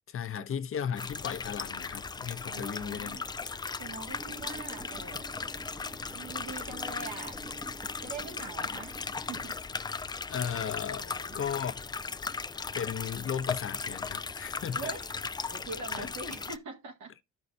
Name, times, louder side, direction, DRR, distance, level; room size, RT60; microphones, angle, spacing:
voice 1, 0.1-3.2 10.3-11.8 12.7-14.9 16.0-16.1, left 8 dB, 45° left, 0.7 m, -35 dB
sound 1, 1.0-16.6, left 4 dB, 15° left, 0.3 m, -37 dB
voice 2, 2.5-3.2 3.8-5.4 6.1-7.4 8.0-9.6 10.9-11.4 14.7-15.1 15.5-17.2, right 4 dB, 75° right, 1.8 m, -43 dB
sound 2, 4.1-9.5, right 2 dB, 10° right, 0.7 m, -48 dB
12.0 x 5.5 x 2.6 m
cardioid pair, 90°, 30 cm